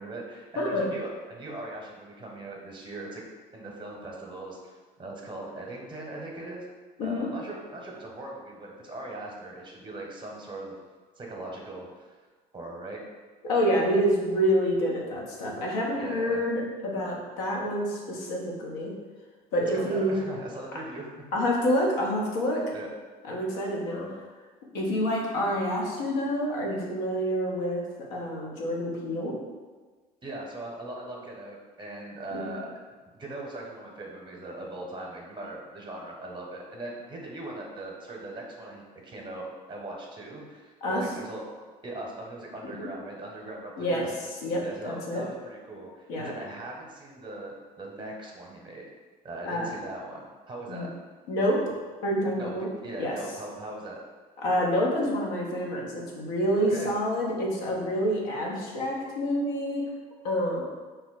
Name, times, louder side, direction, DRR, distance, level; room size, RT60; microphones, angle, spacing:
voice 1, 0.0-3.2 3.5-6.6 7.0-10.7 11.2-12.2 12.5-13.0 13.8-14.1 16.0-16.4 19.7-21.1 22.7-22.9 30.2-32.7 33.1-41.4 41.8-44.1 44.6-48.8 49.2-50.9 52.3-52.5 52.8-54.0 56.6-56.9, right 2 dB, 25° right, -1 dB, 0.8 m, -40 dB
voice 2, 0.6-0.9 7.0-7.3 13.4-18.9 19.5-20.3 21.3-22.6 23.2-24.2 24.7-27.8 28.1-29.4 32.3-32.4 40.8-41.1 42.6-42.9 43.8-44.1 44.4-45.2 46.1-46.3 49.4-49.7 50.7-50.9 51.3-51.7 52.0-52.7 53.0-53.2 54.4-59.9 60.2-60.6, equal, 75° left, -2 dB, 0.7 m, -27 dB
2.7 x 2.0 x 3.9 m, 1.4 s
hypercardioid pair, 65°, 20 cm